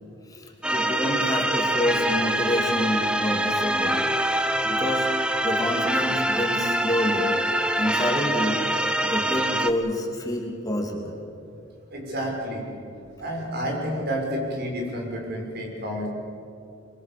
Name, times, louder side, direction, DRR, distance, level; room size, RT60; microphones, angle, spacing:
voice 1, 0.3-4.0 4.4-5.1 5.4-8.6 9.0-11.2, left 1 dB, 20° left, 0 dB, 3.0 m, -28 dB
sound 1, 0.6-9.7, right 1 dB, 5° right, 1.1 m, -24 dB
voice 2, 11.9-12.7 13.2-16.1, equal, 55° right, 0 dB, 6.4 m, -30 dB
25.0 x 24.0 x 7.0 m, 2.8 s
head